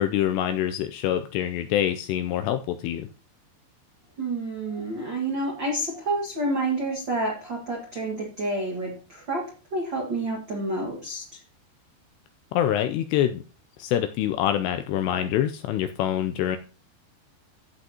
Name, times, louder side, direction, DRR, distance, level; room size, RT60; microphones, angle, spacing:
voice 1, 0.0-3.1 12.5-13.4 13.8-16.6, left 11 dB, 80° left, 8 dB, 2.6 m, -25 dB
voice 2, 4.2-11.4, right 2 dB, 50° right, -1 dB, 1.4 m, -29 dB
14.5 x 7.8 x 2.9 m, 0.36 s
omnidirectional pair, 5.1 m